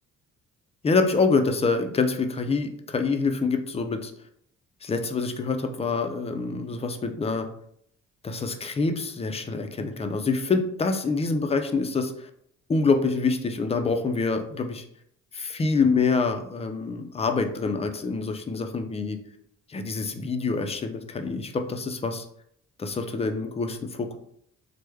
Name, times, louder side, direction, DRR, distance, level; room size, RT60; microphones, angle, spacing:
voice 1, 0.8-4.1 4.8-7.5 8.2-12.3 12.7-14.8 15.3-19.2 19.7-22.2 22.8-24.2, left 4 dB, 20° left, 7 dB, 0.4 m, -26 dB
3.2 x 2.1 x 3.3 m, 0.69 s
cardioid pair, 90°, 30 cm